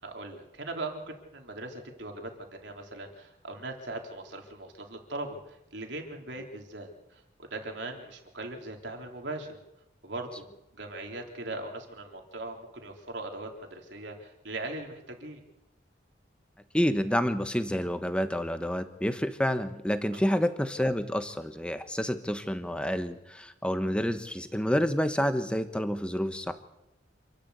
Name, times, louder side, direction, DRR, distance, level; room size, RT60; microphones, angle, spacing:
voice 1, 0.0-9.6 10.0-10.5 10.7-15.4 20.3-20.4, right 2 dB, 70° right, 2 dB, 3.5 m, -40 dB
voice 2, 16.7-26.5, equal, 5° left, 9 dB, 1.3 m, -28 dB
27.0 x 12.0 x 8.2 m, 0.90 s
head